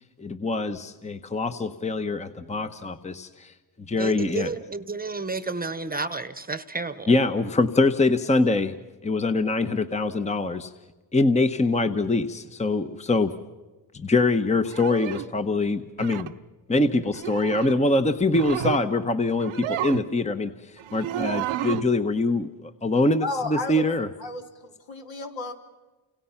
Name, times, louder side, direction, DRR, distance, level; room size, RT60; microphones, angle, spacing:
voice 1, 0.2-3.5 3.9-4.5 7.1-8.8 9.0-10.7 11.1-13.3 13.9-16.3 16.7-20.5 20.9-24.1, left 2 dB, 15° left, 10 dB, 1.1 m, -24 dB
voice 2, 4.0-7.1, right 3 dB, 20° right, 13 dB, 1.2 m, -31 dB
sound 1, 14.7-15.3 16.0-16.3 17.1-17.8 18.2-18.8 19.3-20.1 20.8-21.9, right 13 dB, 75° right, 1.1 m, -31 dB
voice 3, 23.2-23.9 24.2-25.5, left 2 dB, 65° left, 3 dB, 3.8 m, -32 dB
30.0 x 27.0 x 5.9 m, 1.2 s
cardioid pair, 95°, 48 cm